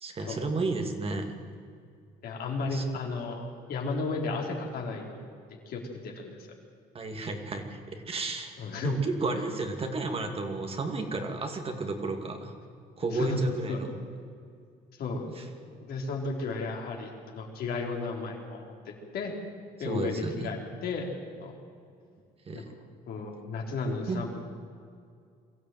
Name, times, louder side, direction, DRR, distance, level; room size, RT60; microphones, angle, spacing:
voice 1, 0.0-1.4 2.7-2.8 6.9-8.5 8.8-12.5 13.0-13.9 15.4-15.5 19.8-20.5 22.5-22.6 24.1-24.3, right 3 dB, 35° right, 5 dB, 2.5 m, -32 dB
voice 2, 2.2-5.2 5.7-6.4 8.6-9.0 9.3-9.4 13.1-13.8 15.0-15.5 15.8-19.3 19.8-21.1 21.4-21.6 22.5-22.7 23.1-24.3, left 3 dB, 65° left, 0 dB, 4.1 m, -34 dB
22.5 x 14.0 x 9.4 m, 2.2 s
cardioid pair, 110°, 17 cm